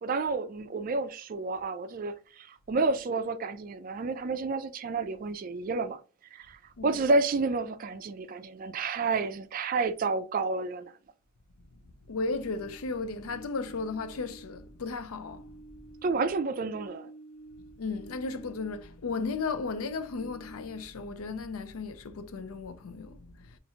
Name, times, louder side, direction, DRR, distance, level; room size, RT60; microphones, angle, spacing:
voice 1, 0.0-6.0 6.3-10.9 16.0-17.1, right 3 dB, 40° right, 0.3 m, -30 dB
voice 2, 12.1-15.4 17.8-23.6, left 4 dB, 90° left, 0.5 m, -35 dB
sound 1, 12.3-14.8 15.1-19.0 19.4-21.1, right 2 dB, 50° left, 1.0 m, -51 dB
4.2 x 2.5 x 2.7 m
head